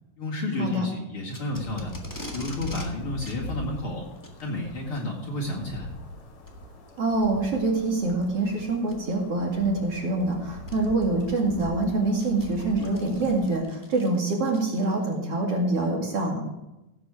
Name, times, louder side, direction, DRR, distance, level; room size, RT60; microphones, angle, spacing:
voice 1, 0.2-1.9 2.3-4.1 4.4-5.9, left 2 dB, 45° left, -3 dB, 2.5 m, -31 dB
Packing tape duct tape, 1.3-2.9 3.2-3.4 4.1-4.4 5.5-5.7 6.4-6.5 7.2-7.3 8.8-9.1 10.2-10.3 10.7-10.8 11.3-15.2, left 1 dB, 20° left, 0.4 m, -43 dB
sound 1, 1.5-13.5, equal, 80° left, 4.1 m, -41 dB
voice 2, 7.0-16.4, right 2 dB, 45° right, -1 dB, 3.0 m, -25 dB
17.0 x 7.8 x 4.9 m, 0.94 s
omnidirectional pair, 3.9 m